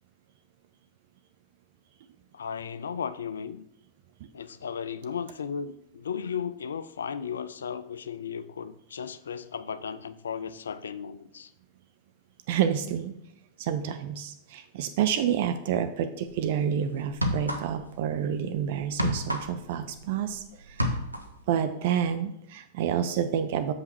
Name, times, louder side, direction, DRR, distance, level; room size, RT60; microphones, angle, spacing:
voice 1, 2.3-3.6 4.3-11.5, left 7 dB, 70° left, 0.4 m, -35 dB
voice 2, 12.5-13.1 13.6-20.9 21.5-23.7, right 9 dB, 50° right, 0.5 m, -29 dB
sound 1, 16.3-16.5 17.1-18.0 18.2-20.4 20.6-21.4, equal, 85° right, 0.7 m, -30 dB
7.2 x 5.4 x 4.5 m
figure-of-eight pair, 90°, 0 cm